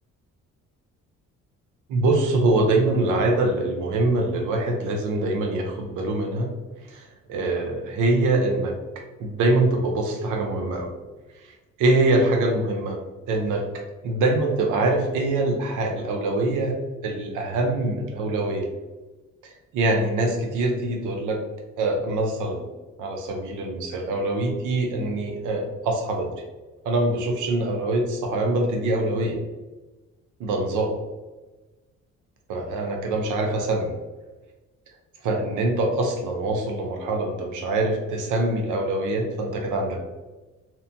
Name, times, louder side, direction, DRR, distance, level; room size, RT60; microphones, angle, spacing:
voice 1, 1.9-6.5 6.9-8.7 9.2-10.9 11.4-13.0 13.3-16.8 17.0-18.7 19.4-21.4 21.8-22.6 23.0-26.3 26.8-29.4 30.4-30.9 32.5-33.9 35.2-40.0, right 2 dB, 90° right, 2 dB, 0.6 m, -24 dB
2.8 x 2.1 x 2.7 m, 1.2 s
cardioid pair, 90°, 30 cm